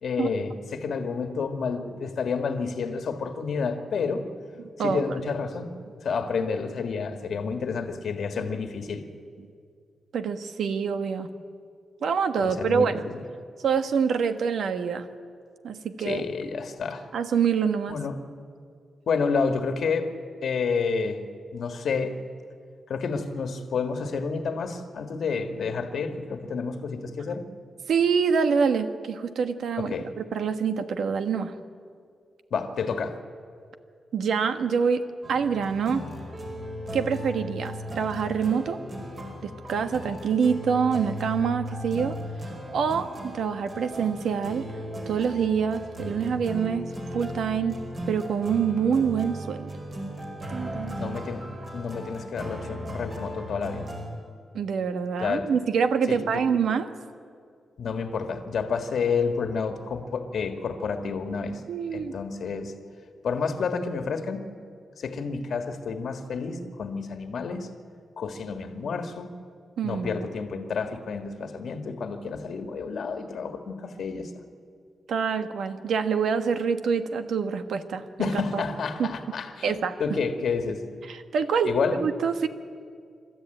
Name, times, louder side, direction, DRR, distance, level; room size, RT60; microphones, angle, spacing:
voice 1, 0.0-4.3 4.8-5.7 6.0-9.1 12.4-13.2 16.0-17.1 17.9-18.2 19.1-20.1 20.4-21.2 21.5-22.2 22.9-27.5 29.8-30.1 32.5-33.2 51.0-53.9 55.2-55.5 56.1-56.4 57.8-61.6 61.9-62.7 63.2-64.5 65.0-67.7 68.2-69.4 69.8-74.3 78.2-80.8 81.6-82.0, left 5 dB, 70° left, 6 dB, 1.6 m, -30 dB
voice 2, 4.6-5.2 10.1-11.3 12.0-13.0 13.6-15.1 15.6-16.2 17.1-18.0 27.9-31.5 34.1-35.0 35.3-36.0 36.9-38.8 39.4-42.2 42.7-44.6 45.1-47.8 48.1-49.7 50.5-51.2 54.5-56.9 61.7-62.1 69.8-70.3 75.1-78.6 79.0-79.1 79.6-80.2 81.1-82.5, right 6 dB, 80° right, 9 dB, 1.3 m, -26 dB
sound 1, 35.2-54.0, equal, 40° right, 5.0 m, -37 dB
28.0 x 13.5 x 9.0 m, 2.2 s
wide cardioid pair, 115°, 0 cm